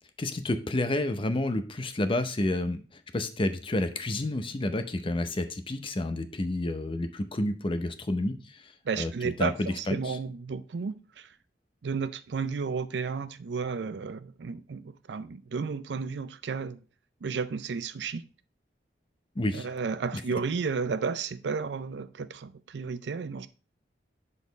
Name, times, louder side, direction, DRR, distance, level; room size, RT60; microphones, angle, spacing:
voice 1, 0.2-10.2 19.4-19.7, left 1 dB, 30° left, 0.6 m, -30 dB
voice 2, 8.9-11.3 11.8-16.8 17.2-18.2 19.5-23.5, right 5 dB, 75° right, 0.5 m, -33 dB
7.3 x 4.1 x 3.9 m
head